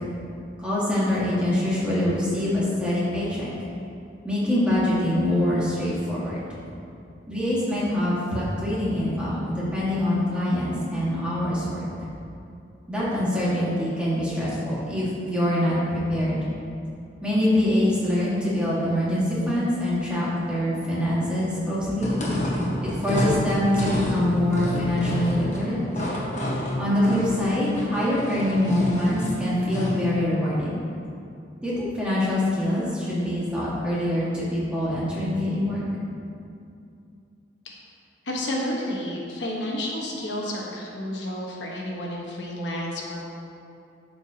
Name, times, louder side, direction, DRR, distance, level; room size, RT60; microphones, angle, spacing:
voice 1, 0.6-3.5 4.2-6.6 7.3-11.8 12.9-16.4 17.2-22.1 22.8-25.8 26.8-30.8 31.6-35.8, left 1 dB, 5° right, -9 dB, 1.7 m, -24 dB
sound 1, 21.9-30.0, left 1 dB, 45° left, 1.2 m, -29 dB
voice 2, 38.2-43.3, left 1 dB, 75° left, -3 dB, 1.2 m, -31 dB
11.5 x 4.6 x 2.8 m, 2.5 s
head